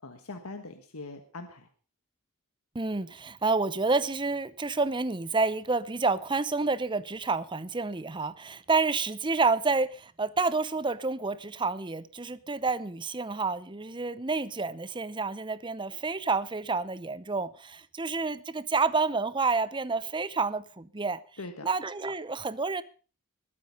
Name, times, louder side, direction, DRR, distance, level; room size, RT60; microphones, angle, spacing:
voice 1, 0.0-1.7 21.4-21.7, left 3 dB, 75° left, 1.5 m, -42 dB
voice 2, 2.7-21.2 21.6-22.8, right 4 dB, 20° right, 0.7 m, -29 dB
21.0 x 9.1 x 5.3 m
head